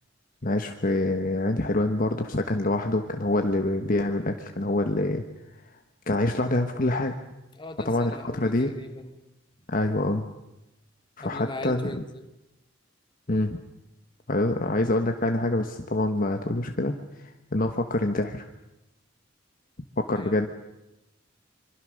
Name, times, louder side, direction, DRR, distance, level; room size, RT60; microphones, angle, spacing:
voice 1, 0.4-5.2 6.1-7.2 7.8-8.7 9.7-10.3 11.2-12.0 13.3-13.6 14.3-18.4 20.0-20.5, left 2 dB, 45° left, 5 dB, 1.3 m, -26 dB
voice 2, 7.5-9.1 11.2-12.2 17.6-17.7 20.1-20.4, left 1 dB, 25° left, 6 dB, 2.3 m, -39 dB
26.5 x 24.5 x 6.5 m, 0.93 s
head